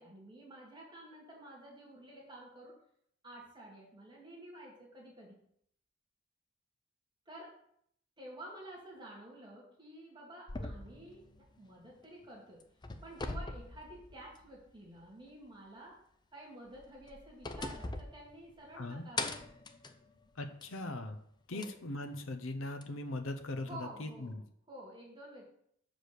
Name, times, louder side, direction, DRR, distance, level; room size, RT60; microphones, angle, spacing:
voice 1, 0.0-2.8 3.2-5.4 7.3-7.6 8.2-12.6 13.0-16.0 16.3-19.3 21.5-21.7 23.6-24.4 24.7-25.5, right 1 dB, 25° right, -3 dB, 2.1 m, -51 dB
sound 1, 10.5-12.2 12.6-14.6 15.0-15.1 16.7-18.8 19.2-20.8 21.6-21.7 22.8-22.9, left 3 dB, 20° left, 0.5 m, -42 dB
voice 2, 20.4-21.2 21.5-24.4, left 2 dB, 80° left, 7 dB, 0.8 m, -40 dB
6.0 x 5.0 x 6.6 m, 0.69 s
head